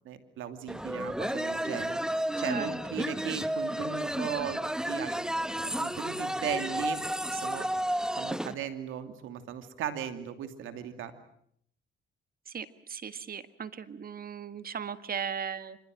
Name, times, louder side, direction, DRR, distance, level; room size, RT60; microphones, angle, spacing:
voice 1, 0.0-2.0 2.4-4.6 4.9-5.3 5.8-7.0 7.3-7.7 8.2-11.1, right 9 dB, 85° right, 8 dB, 2.7 m, -37 dB
sound 1, 0.7-8.5, equal, 5° right, 1.1 m, -32 dB
voice 2, 12.5-15.8, right 7 dB, 50° right, 12 dB, 1.6 m, -37 dB
26.5 x 26.0 x 7.7 m, 0.67 s
cardioid pair, 90°, 20 cm